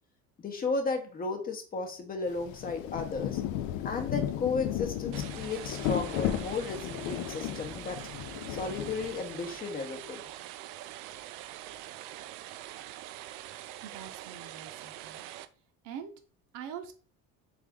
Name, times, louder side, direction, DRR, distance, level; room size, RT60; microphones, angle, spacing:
voice 1, 0.4-3.4 3.8-8.0 8.5-10.2, left 4 dB, 25° left, 5 dB, 0.8 m, -34 dB
Rain, 2.3-9.5, left 11 dB, 65° left, 0.5 m, -34 dB
sound 1, 5.1-15.4, right 14 dB, 85° right, 0.5 m, -44 dB
voice 2, 13.8-15.2 15.8-16.1 16.5-16.9, right 8 dB, 65° right, 6 dB, 0.9 m, -43 dB
3.6 x 3.6 x 3.5 m, 0.41 s
cardioid pair, 135°, 32 cm